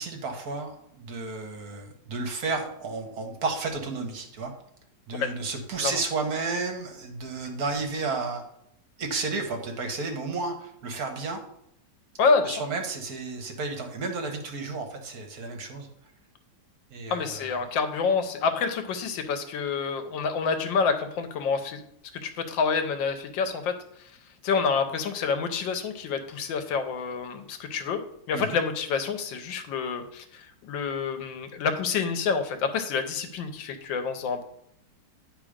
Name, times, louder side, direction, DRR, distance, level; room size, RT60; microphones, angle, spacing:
voice 1, 0.0-4.5 5.1-8.4 9.0-11.4 12.4-15.9 16.9-17.6 28.3-28.6, right 3 dB, 60° right, 4 dB, 1.4 m, -32 dB
voice 2, 12.2-12.6 17.1-21.8 22.2-23.7 24.0-24.1 24.4-28.0 28.3-34.4, left 5 dB, 85° left, 8 dB, 1.5 m, -28 dB
9.7 x 3.4 x 5.0 m, 0.72 s
omnidirectional pair, 2.0 m